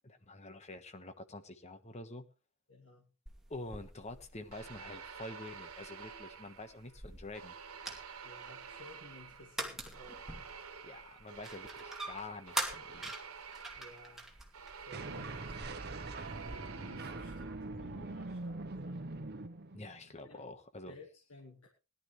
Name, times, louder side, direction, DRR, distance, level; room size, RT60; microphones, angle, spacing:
voice 1, 0.0-2.3 3.5-7.5 10.8-13.1 19.7-20.9, left 2 dB, 30° left, 9 dB, 1.3 m, -47 dB
voice 2, 2.7-3.1 8.2-10.4 13.7-14.3 14.8-15.6 16.7-19.1 20.2-20.4 20.9-21.7, left 2 dB, 80° left, 0 dB, 2.4 m, -56 dB
sound 1, 3.3-16.6, right 1 dB, ahead, 2.4 m, -46 dB
sound 2, 4.5-6.9 7.3-17.7, right 6 dB, 85° right, 1.5 m, -49 dB
sound 3, 14.9-20.1, right 2 dB, 50° right, 1.0 m, -43 dB
19.0 x 11.5 x 3.2 m, 0.30 s
head